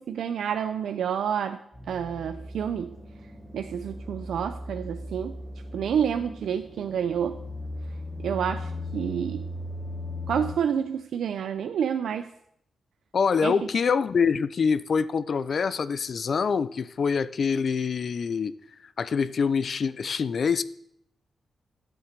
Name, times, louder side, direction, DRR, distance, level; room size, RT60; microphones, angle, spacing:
voice 1, 0.0-1.6 1.9-3.0 3.5-5.3 5.7-7.4 8.2-9.5 10.3-12.3 13.4-13.5, right 8 dB, 85° right, 0.7 m, -29 dB
sound 1, 1.7-10.5, left 1 dB, ahead, 2.2 m, -38 dB
voice 2, 13.1-18.5 19.0-20.6, left 6 dB, 45° left, 0.4 m, -25 dB
13.5 x 8.0 x 6.7 m
wide cardioid pair, 170°, 0 cm